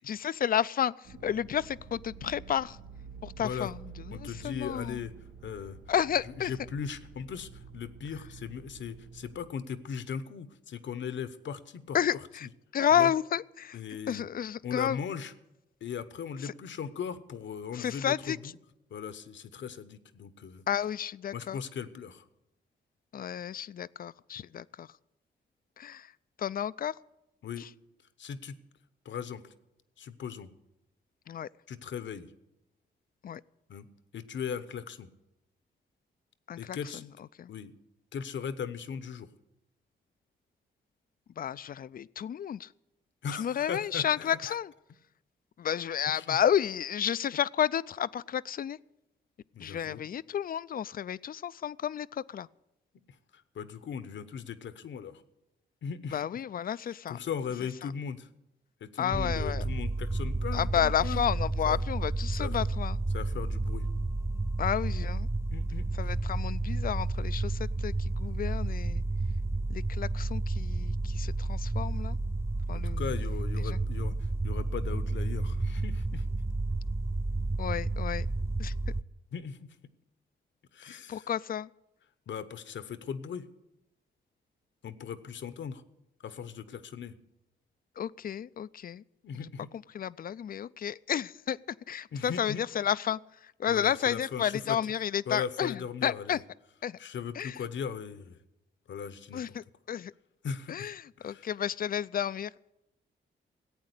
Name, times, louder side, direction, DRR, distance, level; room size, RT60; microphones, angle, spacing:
voice 1, 0.1-0.9 1.2-2.8 3.2-3.8 4.1-5.0 5.9-6.5 11.9-13.8 14.1-15.0 16.4-16.5 17.7-18.4 20.7-21.6 23.1-24.9 25.8-26.1 26.4-27.0 31.3-31.5 33.2-33.4 36.5-36.8 37.4-37.5 41.4-42.7 43.4-44.7 45.6-48.8 49.6-52.5 56.1-57.2 59.0-59.6 60.5-63.0 64.6-65.3 65.9-69.0 69.7-72.2 72.7-73.0 73.6-73.8 77.6-78.3 78.6-78.7 80.9-81.7 88.0-89.0 89.9-91.6 91.9-93.2 93.6-96.4 96.8-97.0 97.4-97.6 99.3-100.1 100.7-102.7, left 9 dB, 50° left, 19 dB, 0.4 m, -31 dB
sound 1, 1.0-9.5, right 6 dB, 90° right, 1.6 m, -49 dB
voice 2, 3.4-3.7 4.1-5.1 5.4-5.8 6.2-12.2 12.9-13.1 13.7-14.2 14.6-15.3 15.8-18.5 18.9-20.6 21.3-22.2 27.4-27.7 28.2-28.6 29.0-29.4 30.0-30.5 31.7-32.3 33.7-33.9 34.1-35.1 36.6-37.1 37.5-37.7 38.1-39.3 43.2-44.6 46.1-46.4 49.5-50.0 53.3-55.2 55.8-56.3 56.7-58.3 58.8-61.2 61.7-61.8 62.4-62.6 63.1-63.9 65.5-65.9 72.7-74.1 74.4-76.2 79.3-79.7 80.7-81.3 82.3-83.5 84.8-85.8 86.2-87.2 89.2-89.7 92.1-92.6 93.7-94.8 95.3-96.4 97.0-98.4 98.9-99.6 100.4-100.9 101.2-101.5, left 7 dB, 70° left, 14 dB, 1.0 m, -38 dB
sound 2, 59.1-79.0, right 2 dB, 15° right, 0.5 m, -31 dB
15.0 x 8.7 x 8.3 m, 0.92 s
cardioid pair, 85°, 20 cm